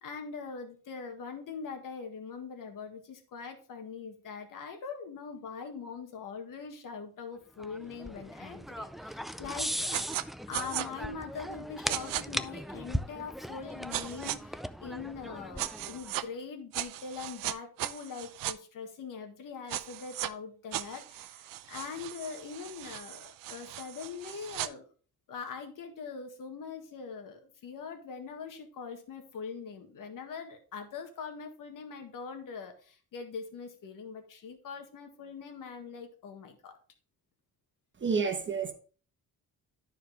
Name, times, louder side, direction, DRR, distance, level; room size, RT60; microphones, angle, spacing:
voice 1, 0.0-10.0 10.5-24.9 25.3-36.8, left 5 dB, 65° left, 1.8 m, -42 dB
sound 1, 7.6-16.1, equal, ahead, 0.4 m, -38 dB
sound 2, 9.9-10.2 10.5-10.9 11.9-12.2 13.9-14.4 15.6-16.2 16.7-18.5 19.7-20.3 20.7-24.7, right 14 dB, 70° right, 0.6 m, -37 dB
voice 2, 38.0-38.7, right 5 dB, 35° right, 1.3 m, -29 dB
12.5 x 4.6 x 3.5 m
cardioid pair, 110°, 35 cm